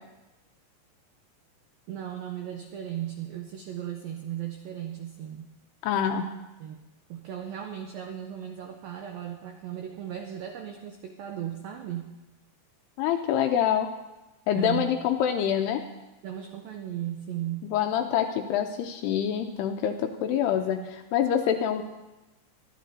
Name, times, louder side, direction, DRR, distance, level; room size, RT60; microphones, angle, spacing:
voice 1, 1.9-5.5 6.6-6.8 7.1-12.1 14.5-14.9 16.2-17.7 20.5-20.9, right 11 dB, 90° right, 3 dB, 2.0 m, -36 dB
voice 2, 5.8-6.3 13.0-13.9 14.5-15.8 17.6-21.8, left 9 dB, 85° left, 5 dB, 2.5 m, -26 dB
24.5 x 12.0 x 2.7 m, 1.0 s
omnidirectional pair, 5.3 m